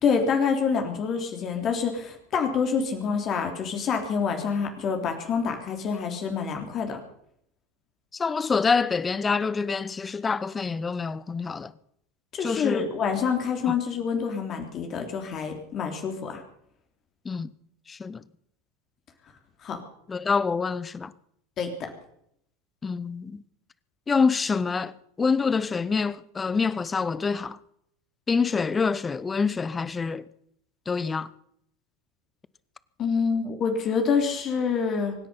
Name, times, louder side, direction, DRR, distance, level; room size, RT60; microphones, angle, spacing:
voice 1, 0.0-7.0 12.3-16.4 19.6-19.8 21.6-21.7 33.0-35.1, left 6 dB, 40° left, 3.3 m, -27 dB
voice 2, 8.1-11.7 12.4-12.9 13.7-13.8 17.2-17.5 17.9-18.2 20.1-21.1 22.8-23.4 24.1-24.9 25.2-27.6 28.3-30.2 30.9-31.3, left 5 dB, 20° left, 0.8 m, -26 dB
25.0 x 10.5 x 5.6 m
figure-of-eight pair, 80°, 0 cm